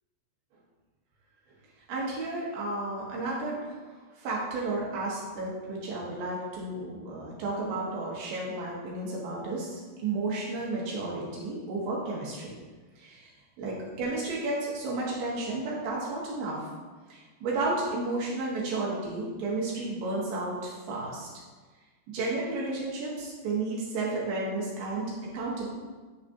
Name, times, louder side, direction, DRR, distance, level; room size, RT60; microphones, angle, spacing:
voice 1, 1.9-12.5 13.0-13.3 13.6-16.7 17.1-21.3 22.1-25.7, right 2 dB, 70° right, -5 dB, 3.0 m, -32 dB
9.6 x 4.1 x 2.7 m, 1.4 s
omnidirectional pair, 4.7 m